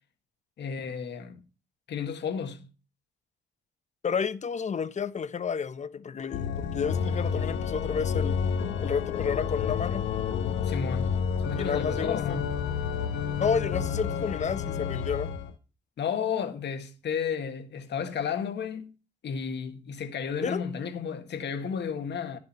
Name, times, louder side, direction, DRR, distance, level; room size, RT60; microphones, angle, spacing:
voice 1, 0.6-1.4 1.9-2.7 10.6-11.1 11.4-12.6 16.0-18.9 19.2-22.4, left 7 dB, 60° left, 1.6 m, -32 dB
voice 2, 4.0-8.4 8.8-10.1 11.5-12.4 13.3-15.3 20.4-20.6, left 6 dB, 35° left, 0.8 m, -31 dB
Organ, 6.3-15.5, left 7 dB, 80° left, 1.2 m, -30 dB
10.5 x 6.8 x 4.2 m
cardioid pair, 90°, 20 cm